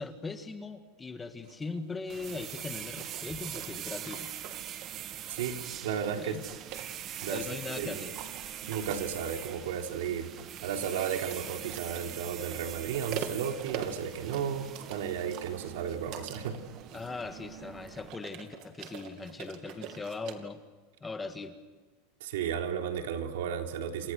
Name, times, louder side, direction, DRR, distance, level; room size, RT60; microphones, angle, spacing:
voice 1, 0.0-4.3 6.2-6.4 7.3-8.2 16.9-20.6 21.0-21.6, left 3 dB, 10° left, 8 dB, 1.7 m, -39 dB
sound 1, 1.4-20.3, right 9 dB, 45° right, 2.5 m, -45 dB
sound 2, 2.1-18.1, right 10 dB, 30° right, 1.2 m, -43 dB
voice 2, 5.3-6.4 7.2-8.0 8.6-10.3 10.6-16.6 22.2-24.1, right 8 dB, 85° right, 4 dB, 3.5 m, -34 dB
29.0 x 28.0 x 6.5 m, 1.3 s
supercardioid pair, 160°, 0 cm